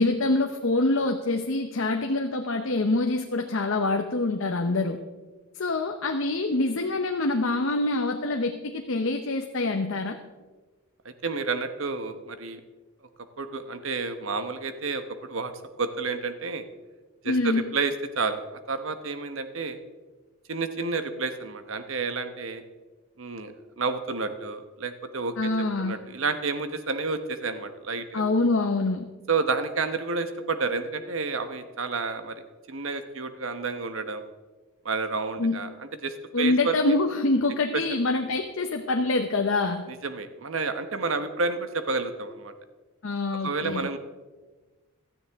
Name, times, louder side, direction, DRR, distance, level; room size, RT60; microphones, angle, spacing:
voice 1, 0.0-5.0 5.6-10.2 17.3-17.7 25.4-26.0 28.1-29.1 35.4-35.6 36.3-39.8 43.0-43.9, left 2 dB, 60° left, 5 dB, 0.8 m, -25 dB
voice 2, 11.0-12.6 13.4-15.5 15.8-16.6 17.2-19.8 20.5-22.6 23.2-25.5 25.8-28.2 29.3-32.4 32.7-34.2 34.8-36.8 39.9-42.5 43.4-44.0, right 4 dB, 65° right, 9 dB, 1.1 m, -30 dB
17.5 x 13.0 x 3.6 m, 1.3 s
head